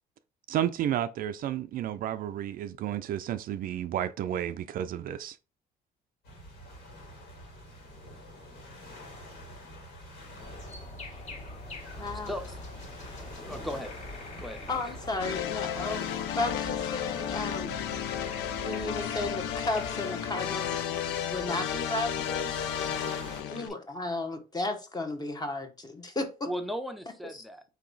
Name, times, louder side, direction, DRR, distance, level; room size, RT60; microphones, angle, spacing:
voice 1, 0.5-5.4, right 11 dB, 55° right, 0.4 m, -31 dB
sound 1, 6.2-23.4, left 1 dB, 75° left, 2.2 m, -47 dB
sound 2, 10.4-19.9, left 1 dB, 45° left, 1.6 m, -44 dB
voice 2, 12.0-12.3 13.4-13.5 14.7-17.7 18.6-22.5 23.5-26.5 27.3-27.4, left 2 dB, 25° left, 1.0 m, -34 dB
voice 3, 13.2-13.9 14.4-14.8 26.4-27.6, equal, ahead, 0.6 m, -37 dB
sound 3, 15.2-23.7, left 9 dB, 90° left, 0.5 m, -33 dB
4.6 x 2.8 x 3.9 m
cardioid pair, 110°, 17 cm